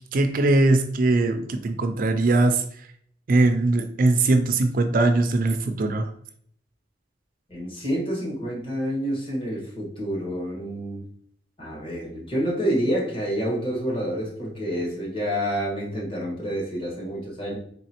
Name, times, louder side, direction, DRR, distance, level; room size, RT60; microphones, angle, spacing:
voice 1, 0.1-2.6 3.3-6.1, right 2 dB, 50° right, 8 dB, 0.4 m, -21 dB
voice 2, 7.5-11.0 11.6-17.6, equal, 30° left, -4 dB, 1.4 m, -28 dB
3.9 x 3.4 x 2.9 m, 0.63 s
head